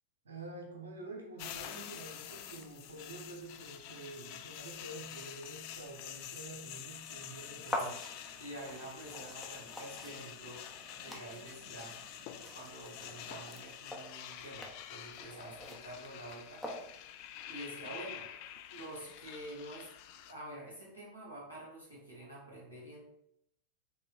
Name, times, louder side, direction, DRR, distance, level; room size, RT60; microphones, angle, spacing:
voice 1, 0.2-8.0, right 2 dB, 70° right, 1 dB, 0.8 m, -48 dB
sound 1, 1.4-20.3, left 10 dB, 45° left, 0.3 m, -48 dB
sound 2, 7.2-13.7, right 5 dB, 30° right, 0.5 m, -62 dB
sound 3, 7.7-17.2, left 1 dB, 5° left, 0.7 m, -45 dB
voice 2, 8.4-10.6 11.0-12.0 12.5-16.8 17.4-18.3 18.7-23.1, right 1 dB, 85° left, -5 dB, 1.5 m, -48 dB
3.5 x 3.1 x 3.3 m, 0.76 s
figure-of-eight pair, 90°, 0 cm